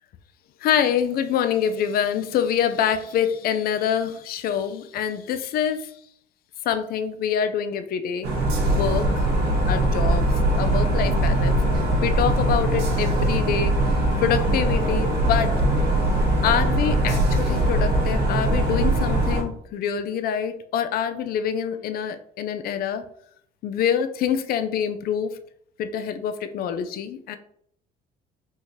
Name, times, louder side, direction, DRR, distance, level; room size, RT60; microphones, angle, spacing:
voice 1, 0.6-5.9 6.7-8.3 8.6-9.2 9.7-10.2 10.6-13.7 14.2-15.5 16.4-23.0 23.6-25.3 25.8-27.4, left 8 dB, 60° left, 10 dB, 0.4 m, -25 dB
sound 1, 8.2-19.4, right 1 dB, 75° right, 0.9 m, -21 dB
3.6 x 3.1 x 2.7 m, 0.68 s
cardioid pair, 110°, 17 cm